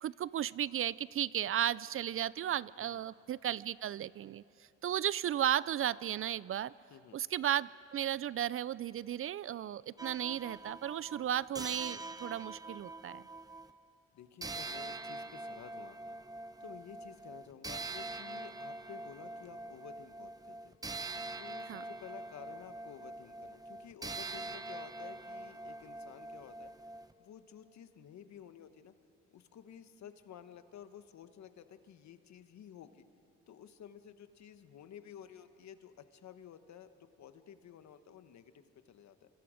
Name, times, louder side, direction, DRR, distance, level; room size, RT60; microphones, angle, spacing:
voice 1, 0.0-4.4 4.8-6.7 7.1-13.2 21.7-21.8, right 11 dB, 45° right, 20 dB, 0.4 m, -34 dB
sound 1, 10.0-13.7 14.4-27.1, right 2 dB, 10° right, 0.9 m, -44 dB
voice 2, 14.1-16.0 16.6-20.8 21.4-26.7 27.2-28.9 29.3-33.0 33.5-39.3, left 9 dB, 65° left, 10 dB, 1.3 m, -53 dB
26.5 x 25.5 x 5.1 m, 2.7 s
cardioid pair, 90°, 30 cm